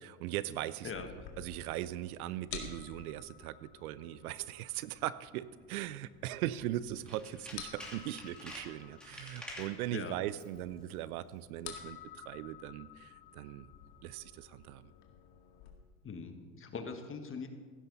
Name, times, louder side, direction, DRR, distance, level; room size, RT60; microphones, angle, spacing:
voice 1, 0.0-1.1 1.4-13.7 14.0-14.9, right 13 dB, 85° right, 17 dB, 0.6 m, -39 dB
sound 1, 0.9-15.7, left 9 dB, 65° left, 2.1 m, -52 dB
Tools, 7.0-9.8 10.3-10.6 10.9-11.0, left 1 dB, ahead, 2.8 m, -48 dB
voice 2, 16.0-17.5, left 5 dB, 30° left, 6 dB, 1.6 m, -41 dB
15.5 x 12.0 x 4.1 m, 1.5 s
supercardioid pair, 100°, 43 cm